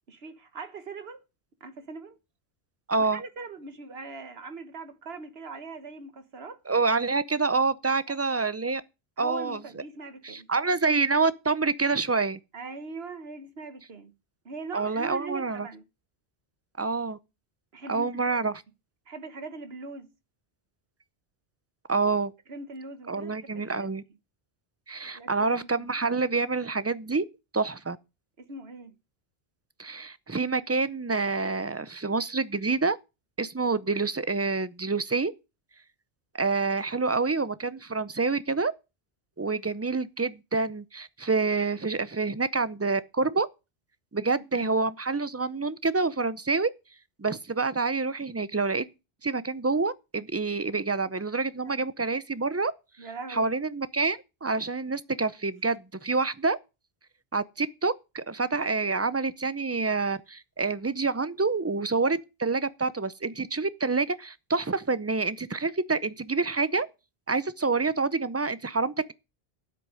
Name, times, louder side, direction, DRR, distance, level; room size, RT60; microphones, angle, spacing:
voice 1, 0.1-1.2 1.6-2.2 3.0-6.6 9.2-10.5 12.5-14.1 14.4-15.8 17.7-18.4 19.1-20.1 22.5-23.9 25.1-25.9 28.4-28.9 44.5-44.7 51.6-51.9 53.0-53.6, right 4 dB, 70° right, 1.5 m, -41 dB
voice 2, 2.9-3.2 6.7-8.8 9.2-9.6 10.2-12.4 14.7-15.7 16.8-17.2 17.9-18.6 21.9-22.3 23.1-24.0 24.9-27.2 27.5-28.0 29.8-33.0 33.4-35.3 36.4-38.7 39.4-43.5 44.1-46.7 47.2-48.9 49.2-52.7 53.3-56.6 57.3-66.9 67.3-69.1, right 4 dB, 25° right, 0.3 m, -27 dB
10.0 x 8.1 x 6.4 m
omnidirectional pair, 1.1 m